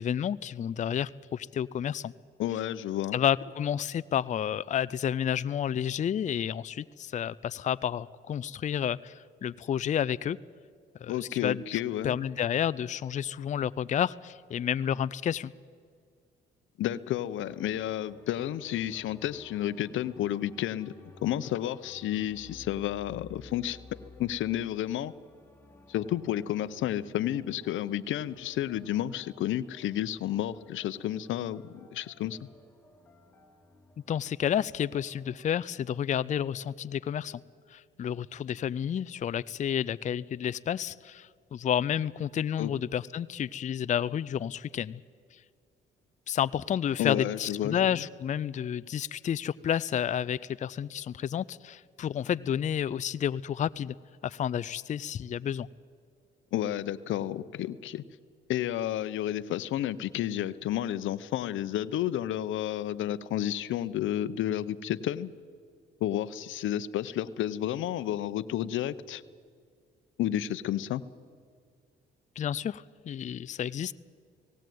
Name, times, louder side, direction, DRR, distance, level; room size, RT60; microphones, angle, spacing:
voice 1, 0.0-2.1 3.1-10.4 11.0-15.5 34.1-37.4 37.7-45.0 46.3-53.9 54.2-55.7 72.4-73.9, left 9 dB, 40° left, 16 dB, 0.4 m, -30 dB
voice 2, 2.4-3.2 11.1-12.1 16.8-20.9 21.2-23.8 24.2-25.1 25.9-32.4 42.6-42.7 47.0-48.0 56.5-58.0 58.5-65.3 66.0-69.2 70.2-71.0, left 12 dB, 80° left, 14 dB, 0.8 m, -31 dB
sound 1, 17.5-35.5, left 2 dB, 10° left, 2.8 m, -55 dB
18.5 x 16.5 x 9.2 m, 2.1 s
cardioid pair, 90°, 20 cm